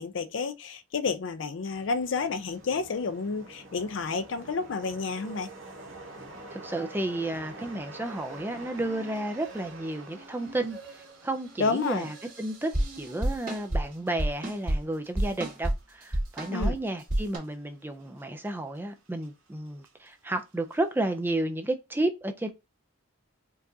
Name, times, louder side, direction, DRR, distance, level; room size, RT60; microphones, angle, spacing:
voice 1, 0.0-5.5 11.6-12.1 16.5-16.8, left 4 dB, 65° left, 0.4 m, -30 dB
sound 1, 1.7-17.5 18.0-18.5 18.7-20.1 20.5-20.8, right 2 dB, 80° right, 1.1 m, -48 dB
voice 2, 6.5-12.7 13.0-22.5, right 1 dB, 10° right, 0.3 m, -32 dB
sound 2, 8.0-13.9, right 3 dB, 55° right, 1.0 m, -50 dB
sound 3, 12.0-13.8 14.2-14.8 15.1-15.7 16.0-16.7 17.0-17.4, right 1 dB, 40° right, 1.6 m, -29 dB
4.5 x 2.4 x 2.6 m
head